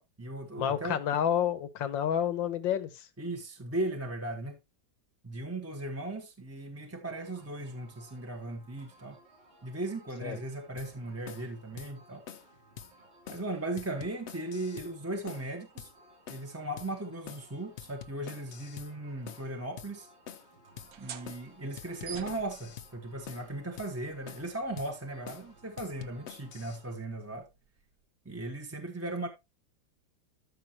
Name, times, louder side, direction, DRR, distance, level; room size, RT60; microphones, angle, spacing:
voice 1, 0.0-1.0 3.2-4.6 5.2-9.2 9.6-12.3 13.3-15.9 16.3-20.1 21.0-27.5 28.2-29.3, right 2 dB, 10° right, 0.8 m, -37 dB
voice 2, 0.6-3.1 10.2-10.4, left 9 dB, 85° left, 1.7 m, -29 dB
sound 1, 7.2-27.0, right 2 dB, 90° right, 4.1 m, -60 dB
sound 2, 10.8-10.9 11.3-11.5 11.8-11.9 12.3-12.5 12.8-12.9 13.3-13.5 13.8-14.9 15.3-15.5 15.8-15.9 16.3-16.5 16.8-16.9 17.3-17.5 17.8-18.9 19.3-19.5 19.8-19.9 20.3-20.5 20.8-20.9 21.3-21.5 21.8-22.9 23.3-23.5 23.8-23.9 24.3-24.5 24.8-24.9 25.3-25.5 25.8-26.8, left 8 dB, 65° left, 0.7 m, -46 dB
sound 3, 20.7-28.0, right 8 dB, 60° right, 1.2 m, -51 dB
13.0 x 5.7 x 3.0 m
omnidirectional pair, 2.0 m